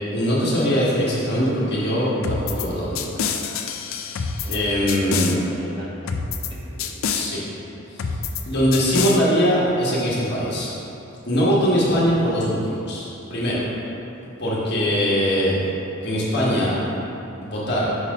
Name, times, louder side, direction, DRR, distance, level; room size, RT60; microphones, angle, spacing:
voice 1, 0.1-3.2 4.5-5.4 7.1-7.4 8.0-8.1 8.5-10.7 11.3-13.6 14.4-15.6 16.0-16.7 17.4-17.9, equal, 55° left, -6 dB, 1.4 m, -21 dB
sound 1, 2.2-2.7 3.0-4.6 4.9-5.4 6.1-6.5 6.8-7.3 8.0-8.4 8.7-9.2, left 6 dB, 70° left, 0.4 m, -26 dB
voice 2, 4.4-6.5 6.8-6.9, right 1 dB, 25° right, -5 dB, 0.9 m, -39 dB
5.7 x 4.0 x 5.2 m, 2.9 s
head